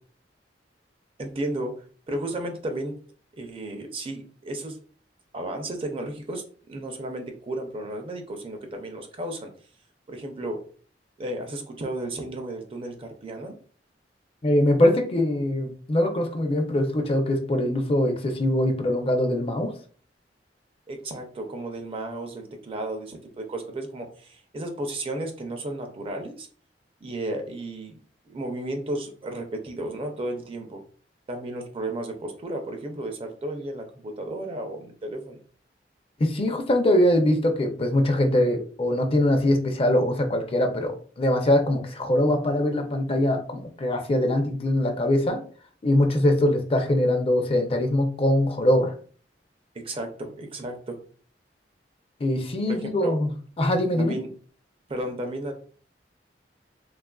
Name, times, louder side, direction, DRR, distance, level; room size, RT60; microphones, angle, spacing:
voice 1, 1.2-3.0 3.3-4.8 5.3-9.5 10.1-10.6 11.2-13.6 20.9-26.5 27.0-28.0 28.3-30.8 31.3-35.4 49.7-51.0 52.7-53.2 53.9-54.3 54.9-55.5, right 1 dB, 30° right, 4 dB, 0.4 m, -33 dB
voice 2, 14.4-19.7 36.2-45.4 45.8-48.9 52.2-53.3 53.6-54.2, left 1 dB, 35° left, 5 dB, 0.4 m, -22 dB
3.2 x 2.4 x 2.2 m, 0.43 s
head